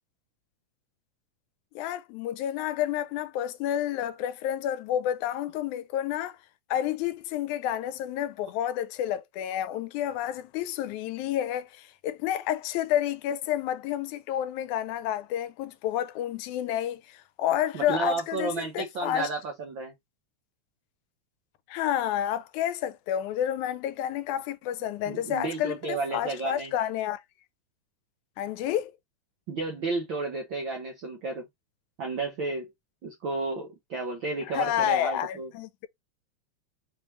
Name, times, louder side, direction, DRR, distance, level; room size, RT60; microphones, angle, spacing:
voice 1, 1.8-6.4 6.7-19.3 21.7-27.2 28.4-28.9 34.5-35.9, left 11 dB, 85° left, 1.9 m, -30 dB
voice 2, 17.7-19.9 25.1-26.7 29.5-31.5 32.0-32.7 33.0-35.5, right 3 dB, 70° right, 1.1 m, -32 dB
5.3 x 2.9 x 3.1 m
omnidirectional pair, 3.4 m